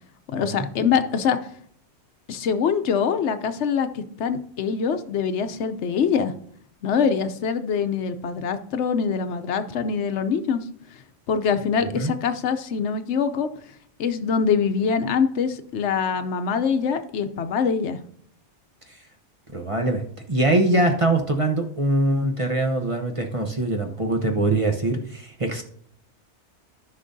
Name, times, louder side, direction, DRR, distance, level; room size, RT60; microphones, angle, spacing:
voice 1, 0.3-1.4 2.3-6.3 6.8-10.6 11.3-13.5 14.0-18.0, left 6 dB, 75° left, 10 dB, 0.9 m, -24 dB
voice 2, 19.5-20.0 20.3-25.6, right 2 dB, 30° right, 4 dB, 0.8 m, -23 dB
13.5 x 5.8 x 2.7 m, 0.64 s
omnidirectional pair, 1.2 m